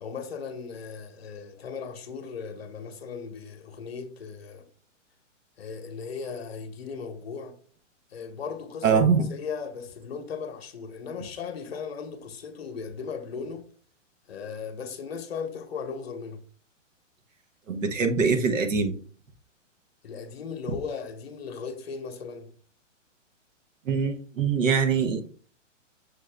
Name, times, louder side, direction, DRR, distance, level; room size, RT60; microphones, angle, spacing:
voice 1, 0.0-4.7 5.6-7.6 8.1-13.7 14.3-16.4 20.0-22.5, left 5 dB, 50° left, 0.9 m, -37 dB
voice 2, 8.8-9.3 17.7-19.0 23.8-25.2, right 5 dB, 80° right, 1.1 m, -23 dB
6.5 x 2.5 x 3.2 m
hypercardioid pair, 180°, 38 cm